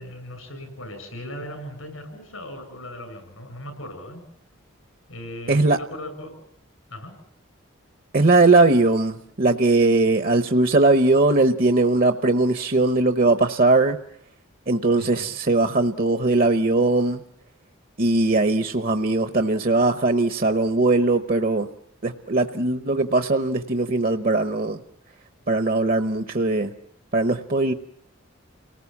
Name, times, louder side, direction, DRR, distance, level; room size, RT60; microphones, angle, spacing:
voice 1, 0.0-4.2 5.1-6.3 6.9-7.1 14.9-15.3, left 1 dB, 85° left, 8 dB, 7.8 m, -38 dB
voice 2, 5.5-5.8 8.1-14.0 14.7-17.2 18.0-21.7 22.0-24.8 25.5-26.7 27.1-27.7, right 2 dB, 45° right, 7 dB, 0.9 m, -20 dB
29.5 x 19.0 x 7.2 m, 0.74 s
head